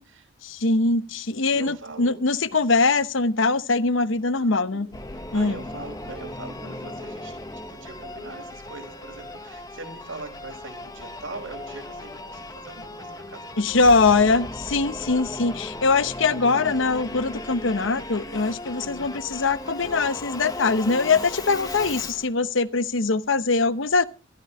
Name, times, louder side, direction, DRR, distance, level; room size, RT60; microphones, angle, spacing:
voice 1, 0.4-4.9 5.3-5.6 13.6-24.0, left 3 dB, 75° left, 0.9 m, -22 dB
voice 2, 1.5-2.2 4.3-7.4 7.7-14.1 15.0-15.4 18.8-19.1, right 2 dB, 90° right, 5.6 m, -41 dB
Singing / Musical instrument, 4.9-22.3, left 2 dB, 20° left, 1.3 m, -37 dB
21.0 x 14.0 x 3.1 m
head